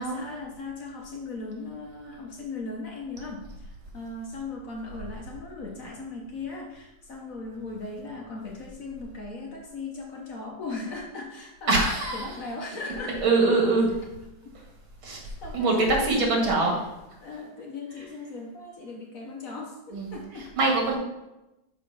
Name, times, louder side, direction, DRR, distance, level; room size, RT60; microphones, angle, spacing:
voice 1, 0.0-11.8 12.1-13.3 15.4-16.5 17.2-20.6, left 3 dB, 50° left, 0 dB, 1.2 m, -38 dB
voice 2, 11.7-12.3 13.2-13.9 15.0-16.7 19.9-20.1 20.6-21.0, right 3 dB, 90° right, -1 dB, 2.4 m, -23 dB
6.5 x 4.2 x 5.4 m, 0.96 s
omnidirectional pair, 2.2 m